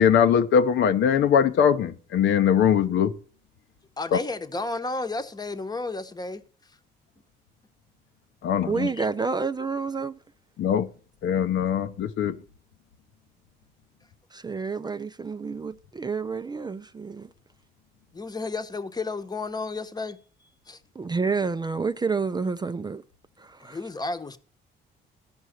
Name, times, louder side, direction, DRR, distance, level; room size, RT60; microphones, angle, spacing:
voice 1, 0.0-3.1 4.1-4.2 8.4-8.9 10.6-10.9 11.2-12.4, left 8 dB, 75° left, 0.9 m, -21 dB
voice 2, 4.0-6.4 18.1-20.2 20.7-20.8 23.6-24.4, left 3 dB, 20° left, 1.0 m, -32 dB
voice 3, 8.7-10.2 14.3-17.3 21.0-23.0 23.4-23.8, right 4 dB, 20° right, 0.4 m, -29 dB
13.5 x 5.5 x 6.4 m
cardioid pair, 90°, 20 cm